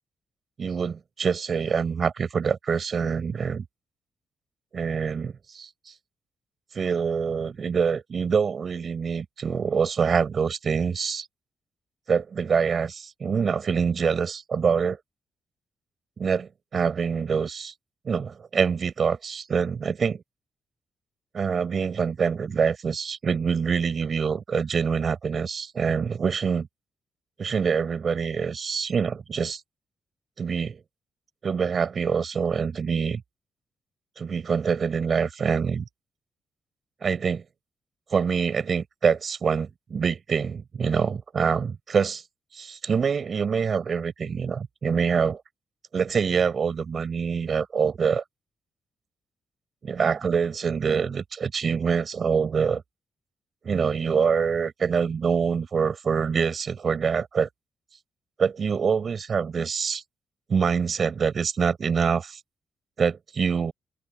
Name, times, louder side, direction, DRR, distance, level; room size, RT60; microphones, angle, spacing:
voice 1, 0.6-3.6 4.7-5.7 6.7-11.3 12.1-15.0 16.2-17.7 18.0-20.2 21.3-26.7 27.4-29.6 30.4-30.8 31.4-33.2 34.2-35.8 37.0-37.4 38.1-42.2 42.5-45.4 45.9-48.2 49.8-52.8 53.6-57.5 58.4-60.0 60.5-62.4 63.0-63.7, right 6 dB, 55° right, 6.5 m, -25 dB
open air
cardioid pair, 70°, 0 cm